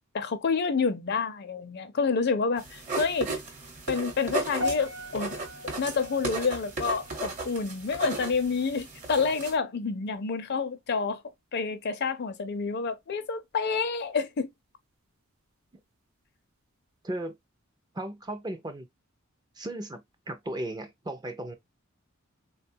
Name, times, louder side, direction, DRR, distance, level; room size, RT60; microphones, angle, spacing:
voice 1, 0.1-3.3 3.9-5.4 5.8-11.2 11.5-14.5, left 5 dB, 55° left, 0.5 m, -28 dB
sound 1, 2.6-9.5, right 3 dB, 40° right, 1.0 m, -36 dB
sound 2, 4.6-9.0 9.3-9.6 10.3-10.4, left 1 dB, 70° right, 0.8 m, -40 dB
voice 2, 17.0-17.4 17.9-18.9 19.6-20.0 20.3-21.5, right 1 dB, 20° right, 0.5 m, -35 dB
3.4 x 2.2 x 2.6 m
head